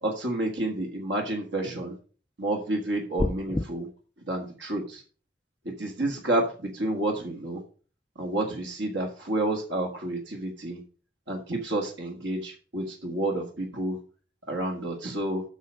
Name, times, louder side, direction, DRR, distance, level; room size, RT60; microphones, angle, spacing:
voice 1, 0.0-2.0 2.4-3.9 4.3-5.0 5.8-7.6 8.2-10.8 11.3-14.0 14.5-15.4, right 1 dB, 85° right, 2 dB, 1.7 m, -30 dB
sound 1, 3.2-3.7, left 1 dB, 15° left, 0.3 m, -27 dB
8.2 x 5.7 x 6.3 m, 0.40 s
head